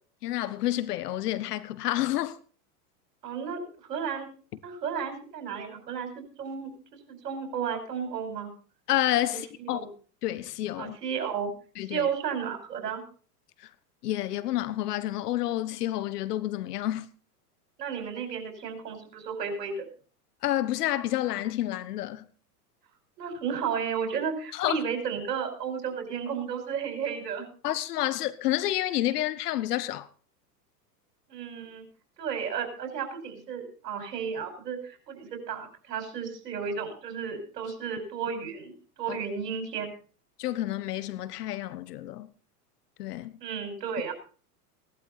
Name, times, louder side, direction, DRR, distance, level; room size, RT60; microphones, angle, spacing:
voice 1, 0.2-2.4 8.9-9.8 10.2-11.0 11.8-12.1 14.0-17.1 20.4-22.3 24.5-24.8 27.6-30.1 39.1-39.2 40.4-42.3 43.0-43.3, left 14 dB, 70° left, 1.3 m, -29 dB
voice 2, 3.2-4.3 4.6-8.5 9.3-9.9 10.8-11.5 11.9-13.0 17.8-19.9 23.2-27.5 31.3-31.8 32.2-39.9 43.4-44.1, right 6 dB, 80° right, 5.1 m, -33 dB
17.5 x 12.0 x 4.2 m
hypercardioid pair, 105°, 48 cm